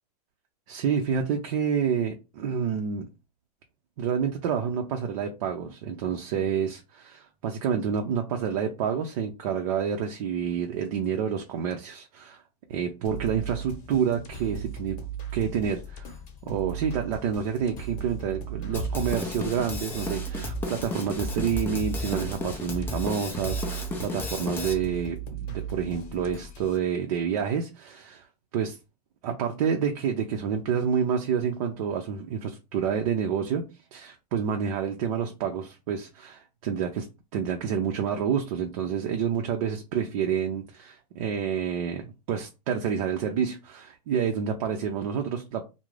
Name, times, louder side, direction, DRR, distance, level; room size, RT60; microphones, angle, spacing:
voice 1, 0.7-3.1 4.0-12.4 12.7-15.0 15.3-16.1 16.4-28.3 28.5-28.8 29.2-33.6 33.9-37.1 37.3-45.7, right 7 dB, 60° right, 0.5 m, -28 dB
sound 1, 13.0-26.8, right 6 dB, 40° left, 0.9 m, -38 dB
Drum kit, 18.7-24.7, left 2 dB, 10° left, 0.4 m, -33 dB
2.4 x 2.0 x 3.1 m
supercardioid pair, 140°, 20 cm